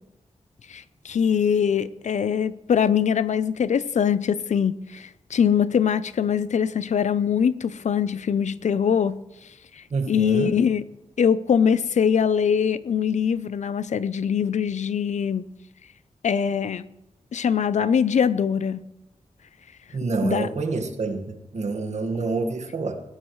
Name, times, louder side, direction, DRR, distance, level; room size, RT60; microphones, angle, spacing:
voice 1, 0.7-9.2 10.1-10.8 11.2-15.4 16.2-16.8 17.3-18.8 20.2-20.5, left 7 dB, 80° left, 0.5 m, -22 dB
voice 2, 9.9-10.5 19.9-23.0, right 3 dB, 70° right, 1.6 m, -27 dB
20.0 x 16.5 x 3.2 m
wide cardioid pair, 135°, 12 cm